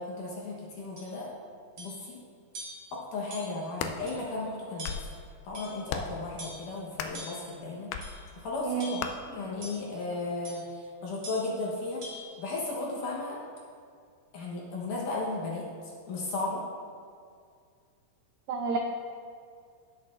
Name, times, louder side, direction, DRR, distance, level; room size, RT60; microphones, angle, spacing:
voice 1, 0.0-1.3 1.8-2.2 2.9-5.1 5.4-12.0 12.4-13.4 14.3-15.7 16.1-16.6, left 3 dB, 65° left, -4 dB, 2.3 m, -35 dB
sound 1, 1.0-1.1 1.8-2.0 2.5-2.9 3.3-3.7 4.1-4.2 4.8-5.2 5.5-5.9 6.4-6.7 7.1-7.5 8.0-8.3 8.8-9.2 9.6-9.9 10.4-10.7 11.2-11.5 12.0-12.2, equal, 40° right, 2.1 m, -44 dB
sound 2, 3.5-4.0 4.6-5.1 5.9-6.2 6.9-7.3 7.9-8.1 9.0-9.1, left 7 dB, 85° left, 2.6 m, -35 dB
voice 2, 8.6-8.9 18.5-18.8, right 6 dB, 90° right, 1 dB, 1.9 m, -30 dB
18.0 x 6.6 x 2.5 m, 2.2 s
omnidirectional pair, 4.7 m